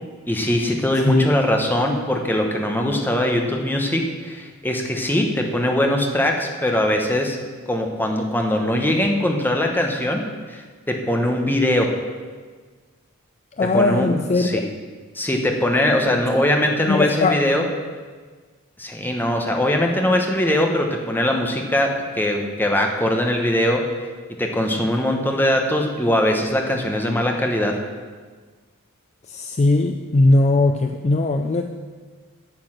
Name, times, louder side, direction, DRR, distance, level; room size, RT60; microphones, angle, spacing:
voice 1, 0.3-7.4 7.7-11.9 13.7-14.6 15.1-17.6 18.8-23.8 24.4-27.8, left 1 dB, 10° left, 2 dB, 1.0 m, -21 dB
voice 2, 13.6-14.6 16.9-17.4 29.3-31.6, left 2 dB, 30° left, 6 dB, 0.4 m, -19 dB
8.8 x 8.0 x 6.4 m, 1.5 s
head